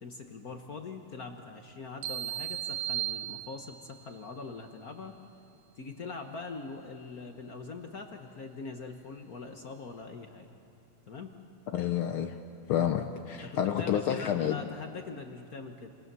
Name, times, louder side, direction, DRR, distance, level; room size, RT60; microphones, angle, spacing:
voice 1, 0.0-5.2 5.8-10.5 11.1-11.3 13.4-15.9, left 4 dB, 60° left, 4 dB, 0.9 m, -42 dB
sound 1, 2.0-4.0, right 12 dB, 75° right, 2.2 m, -35 dB
voice 2, 11.7-12.4 12.7-14.6, left 9 dB, 85° left, 6 dB, 1.1 m, -29 dB
28.0 x 26.5 x 6.9 m, 2.6 s
omnidirectional pair, 3.4 m